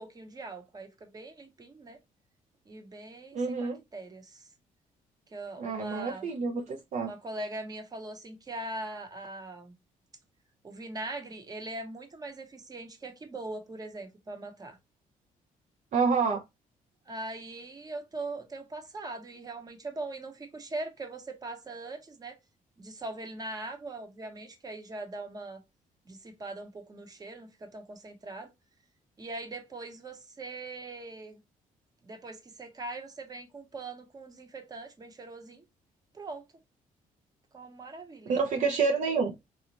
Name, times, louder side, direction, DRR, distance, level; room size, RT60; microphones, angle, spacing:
voice 1, 0.0-2.0 2.7-4.5 5.3-6.3 7.0-9.7 10.6-14.8 17.1-22.4 22.8-25.6 26.1-28.5 29.2-31.4 32.0-35.6 36.1-36.4 37.5-38.4, right 2 dB, 25° right, 1.0 m, -41 dB
voice 2, 3.3-3.8 5.6-6.6 6.9-7.1 15.9-16.4 38.3-39.3, right 5 dB, 55° right, 0.7 m, -27 dB
3.9 x 2.4 x 2.8 m
cardioid pair, 130°, 14 cm